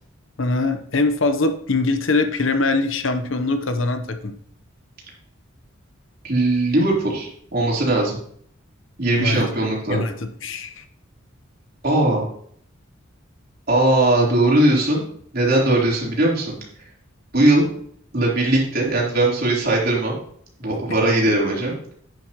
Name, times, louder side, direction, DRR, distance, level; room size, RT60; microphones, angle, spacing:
voice 1, 0.4-4.3 9.2-9.5 9.9-10.8, left 3 dB, 70° left, 8 dB, 0.9 m, -22 dB
voice 2, 6.2-8.2 9.0-10.0 11.8-12.2 13.7-15.0 15.3-16.6 17.3-17.7 18.1-20.2 20.6-21.7, right 2 dB, 45° right, -4 dB, 3.7 m, -19 dB
11.0 x 9.5 x 3.0 m, 0.63 s
head